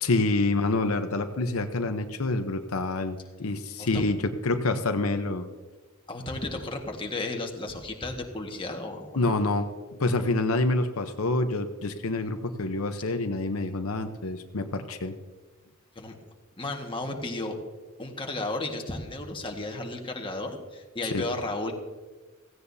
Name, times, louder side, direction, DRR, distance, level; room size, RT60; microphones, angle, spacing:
voice 1, 0.0-5.4 9.2-9.7 10.0-15.2 21.1-21.2, left 2 dB, 85° left, 7 dB, 0.9 m, -27 dB
voice 2, 3.8-4.1 6.1-9.3 16.0-16.2 16.6-17.6 18.0-21.7, left 2 dB, 25° left, 2 dB, 1.6 m, -34 dB
16.5 x 16.0 x 2.8 m, 1.3 s
head